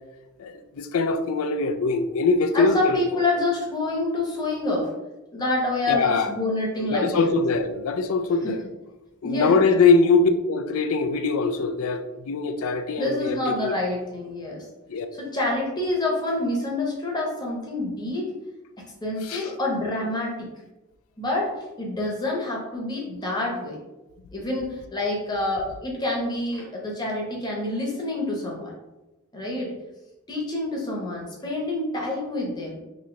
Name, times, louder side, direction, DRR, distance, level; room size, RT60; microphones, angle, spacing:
voice 1, 0.4-3.0 5.9-6.3 6.8-8.7 9.2-13.7 14.9-15.1 19.2-19.5, left 4 dB, 70° left, 8 dB, 0.4 m, -22 dB
voice 2, 2.5-4.9 5.3-7.3 8.4-8.6 9.2-9.6 13.0-14.7 15.1-18.3 18.8-20.5 21.2-23.8 24.3-28.7 29.3-29.7 30.3-32.8, left 2 dB, 20° left, -3 dB, 0.8 m, -27 dB
3.2 x 2.8 x 3.7 m, 1.1 s
head